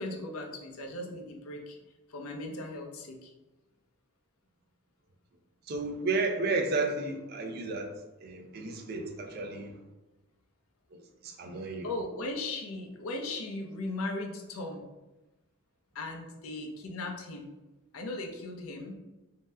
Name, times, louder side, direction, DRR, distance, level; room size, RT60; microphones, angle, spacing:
voice 1, 0.0-1.8 2.1-3.3 11.8-14.8 15.9-17.5 17.9-19.0, left 2 dB, 85° left, 2 dB, 0.5 m, -37 dB
voice 2, 5.7-7.9 8.2-9.7 10.9-11.9, right 3 dB, 50° right, 3 dB, 0.4 m, -32 dB
2.7 x 2.1 x 3.3 m, 1.0 s
head